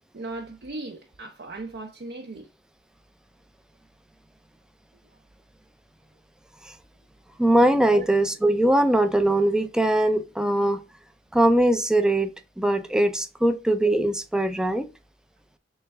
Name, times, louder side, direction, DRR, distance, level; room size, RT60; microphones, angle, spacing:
voice 1, 0.1-2.5 7.9-8.1, right 2 dB, 55° right, 0.5 m, -37 dB
voice 2, 7.4-10.8 11.3-12.3 12.6-14.9, right 1 dB, 5° right, 0.3 m, -21 dB
3.3 x 3.1 x 3.4 m
head